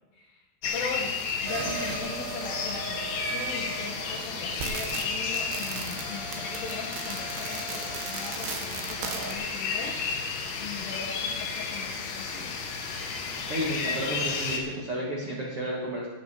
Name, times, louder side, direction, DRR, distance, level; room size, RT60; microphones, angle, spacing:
voice 1, 0.1-0.5 0.7-10.0 10.6-12.6, left 4 dB, 70° left, -1 dB, 2.3 m, -39 dB
sound 1, 0.6-14.6, left 5 dB, 90° left, 3.9 m, -33 dB
sound 2, 1.5-9.3, right 5 dB, 75° right, 3.3 m, -37 dB
voice 2, 13.5-16.1, right 1 dB, 90° right, -3 dB, 1.2 m, -31 dB
17.5 x 6.6 x 6.1 m, 1.2 s
omnidirectional pair, 5.2 m